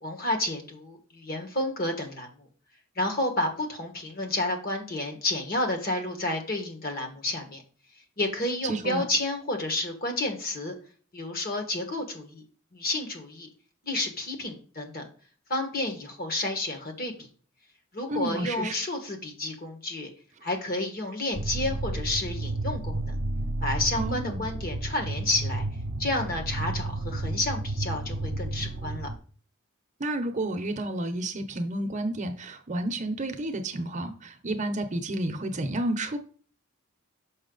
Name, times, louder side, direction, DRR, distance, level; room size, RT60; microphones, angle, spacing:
voice 1, 0.0-2.5 2.9-7.6 8.2-10.7 11.1-12.4 12.7-13.5 13.8-15.1 15.5-17.1 17.9-20.1 20.4-23.2 23.6-25.7 26.0-29.1, left 2 dB, 45° left, 4 dB, 1.5 m, -30 dB
voice 2, 8.6-9.1 18.1-18.8 24.0-24.4 30.0-36.2, right 1 dB, 35° right, 7 dB, 0.8 m, -31 dB
sound 1, 21.3-29.2, right 2 dB, 65° right, 0.8 m, -32 dB
6.4 x 5.8 x 3.9 m, 0.42 s
head